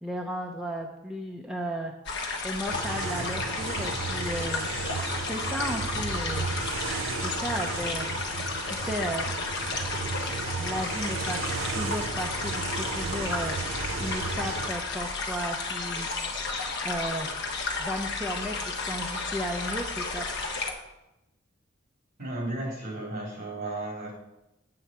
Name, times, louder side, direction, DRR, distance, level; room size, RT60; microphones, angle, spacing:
voice 1, 0.0-1.9 2.4-4.6 5.2-6.5 7.1-8.1 8.6-9.3 10.6-13.5 14.0-16.1 16.8-17.3 17.8-20.5, equal, 5° right, 0 dB, 0.6 m, -34 dB
sound 1, 2.1-20.7, left 3 dB, 60° left, 1.2 m, -33 dB
sound 2, 2.7-14.7, right 4 dB, 80° right, 0.7 m, -34 dB
voice 2, 22.2-24.1, right 2 dB, 45° right, -1 dB, 3.1 m, -34 dB
8.1 x 7.7 x 4.4 m, 0.91 s
head